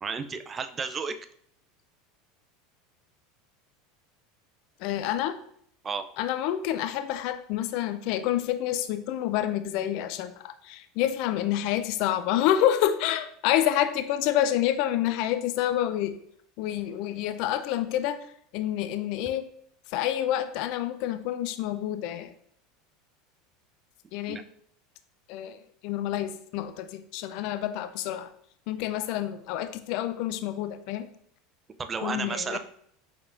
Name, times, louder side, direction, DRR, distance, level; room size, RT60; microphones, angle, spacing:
voice 1, 0.0-1.2 5.8-6.0 24.3-24.4 31.8-32.6, right 5 dB, 25° right, 10 dB, 0.4 m, -32 dB
voice 2, 4.8-5.4 6.2-10.3 10.6-16.2 16.6-18.2 18.5-19.4 19.9-22.3 24.1-24.4 25.3-28.3 28.7-31.1 32.0-32.6, left 12 dB, 60° left, 10 dB, 0.4 m, -28 dB
4.9 x 3.5 x 2.5 m, 0.66 s
hypercardioid pair, 95°, 0 cm